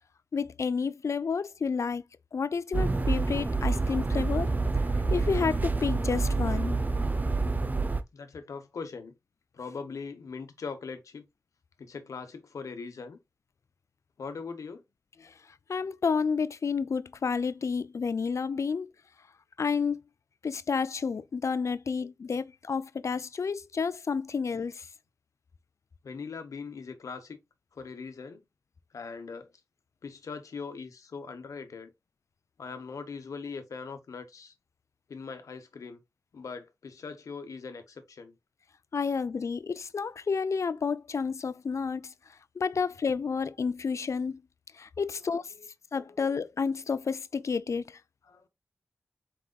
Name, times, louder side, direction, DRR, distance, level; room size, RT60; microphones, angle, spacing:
voice 1, 0.3-2.0 2.3-4.5 5.1-6.8 15.2-15.3 15.7-18.9 19.6-20.0 20.4-24.9 38.9-42.1 42.6-44.4 44.8-45.4 45.9-48.0, left 5 dB, 65° left, 0.4 m, -30 dB
sound 1, 2.7-8.0, right 3 dB, 30° right, 0.5 m, -27 dB
voice 2, 8.1-9.1 9.5-11.2 11.8-13.2 14.2-14.8 18.6-18.8 26.0-27.4 27.7-28.4 28.9-29.5 30.0-31.9 32.6-34.5 35.1-36.0 36.3-38.4 39.0-39.2 45.1-45.7 45.9-46.4 48.2-48.5, left 5 dB, 90° left, 1.0 m, -41 dB
4.8 x 3.9 x 2.3 m
wide cardioid pair, 65°, 5 cm